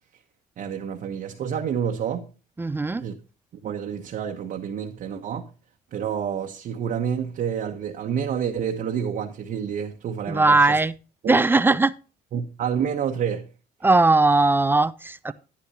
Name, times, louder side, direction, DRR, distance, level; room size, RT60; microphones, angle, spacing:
voice 1, 0.6-2.3 3.0-3.1 3.6-5.5 5.9-10.8 11.2-11.4 12.3-13.4, right 8 dB, 55° right, 1.1 m, -28 dB
voice 2, 2.6-3.1 10.3-10.9 11.3-11.9 13.8-15.3, right 3 dB, 10° right, 0.4 m, -19 dB
11.5 x 9.5 x 2.8 m
cardioid pair, 110°, 17 cm